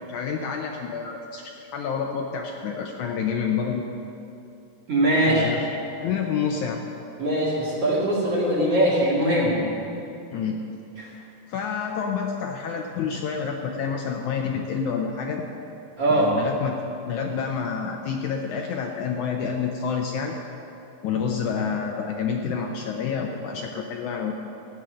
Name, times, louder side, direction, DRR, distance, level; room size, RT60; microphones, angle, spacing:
voice 1, 0.1-3.9 5.3-5.6 6.0-6.8 10.3-10.7 11.5-15.4 16.1-20.4 21.0-24.3, left 6 dB, 75° left, 2 dB, 1.9 m, -28 dB
voice 2, 4.9-5.5 7.2-9.6 11.0-11.1 16.0-16.3, right 1 dB, 45° right, -5 dB, 3.0 m, -21 dB
14.0 x 9.2 x 6.4 m, 2.8 s
omnidirectional pair, 4.0 m